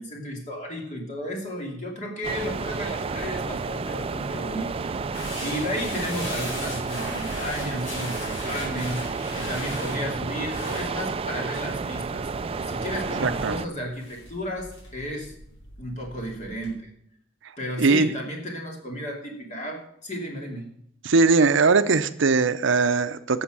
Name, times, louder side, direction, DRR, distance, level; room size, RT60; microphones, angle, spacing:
voice 1, 0.0-4.9 5.4-9.0 9.3-12.3 12.7-15.3 15.8-16.9 17.6-20.7, equal, 40° left, 1 dB, 2.7 m, -33 dB
sound 1, 2.2-13.7, right 4 dB, 30° right, 0.4 m, -31 dB
sound 2, 5.1-16.8, left 1 dB, 70° left, 4.8 m, -40 dB
voice 2, 13.2-13.6 17.8-18.1 21.0-23.4, right 4 dB, 65° right, 12 dB, 0.6 m, -20 dB
11.5 x 7.3 x 6.1 m, 0.71 s
head